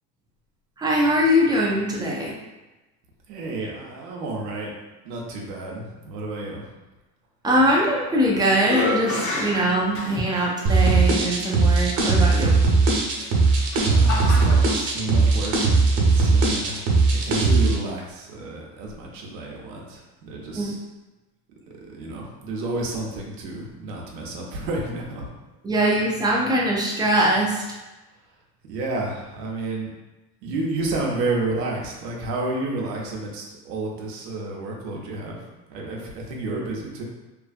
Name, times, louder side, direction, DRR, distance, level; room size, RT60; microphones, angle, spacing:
voice 1, 0.8-2.3 7.4-12.5 20.6-20.7 25.6-27.6, equal, 10° right, -3 dB, 0.3 m, -22 dB
voice 2, 3.3-4.7 5.0-6.6 13.8-20.8 21.8-25.3 28.7-29.9 30.4-35.4 35.7-37.0, right 2 dB, 90° right, -1 dB, 0.7 m, -31 dB
sound 1, 7.8-8.2 8.6-10.5 11.2-11.3 13.1-14.8, left 2 dB, 40° left, 0.7 m, -29 dB
sound 2, 10.7-17.8, right 3 dB, 60° right, 0.9 m, -18 dB
2.7 x 2.5 x 2.4 m, 1.1 s
supercardioid pair, 100°, 48 cm